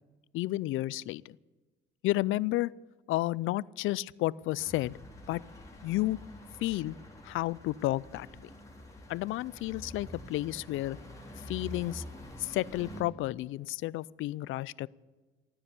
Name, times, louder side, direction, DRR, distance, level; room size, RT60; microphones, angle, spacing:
voice 1, 0.3-1.4 2.0-2.7 3.1-5.0 5.3-5.4 5.8-6.2 6.6-6.9 7.2-8.4 9.1-11.0 11.5-12.0 12.4-14.9, left 17 dB, 85° left, 22 dB, 0.4 m, -31 dB
sound 1, 4.6-13.0, left 1 dB, 15° left, 3.7 m, -47 dB
14.5 x 9.7 x 8.3 m, 1.3 s
cardioid pair, 90°, 20 cm